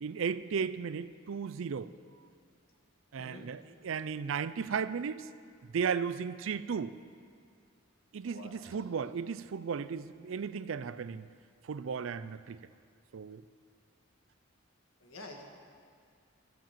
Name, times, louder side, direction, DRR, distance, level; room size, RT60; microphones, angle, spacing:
voice 1, 0.0-1.9 3.1-5.3 5.7-6.9 8.1-11.3 11.6-12.6 13.1-13.4, right 6 dB, 70° right, 0.4 m, -35 dB
voice 2, 8.2-9.0 15.0-15.4, left 2 dB, 75° left, 1.8 m, -49 dB
13.5 x 7.7 x 7.3 m
head